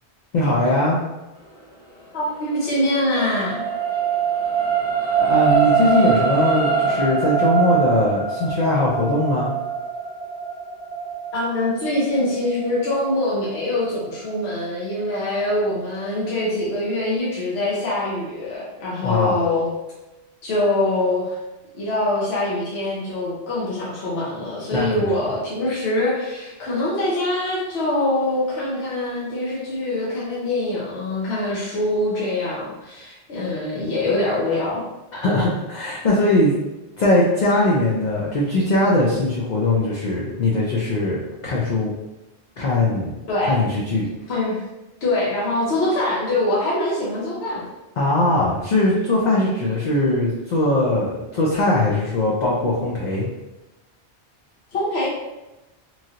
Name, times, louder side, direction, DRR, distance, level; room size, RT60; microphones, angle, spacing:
voice 1, 0.3-1.0 5.2-9.5 19.0-19.4 24.7-25.1 35.1-36.5 37.0-41.9 42.6-43.2 43.5-44.1 48.0-53.3, left 1 dB, 55° left, -4 dB, 0.5 m, -20 dB
voice 2, 2.1-3.6 11.3-19.7 20.4-21.4 21.7-34.8 43.3-43.6 44.3-44.6 45.0-47.7 54.7-55.1, left 1 dB, 70° left, -6 dB, 1.0 m, -24 dB
sound 1, 2.3-14.9 15.4-15.5, right 6 dB, 5° left, 0.9 m, -23 dB
3.0 x 2.7 x 2.4 m, 1.0 s
omnidirectional pair, 1.1 m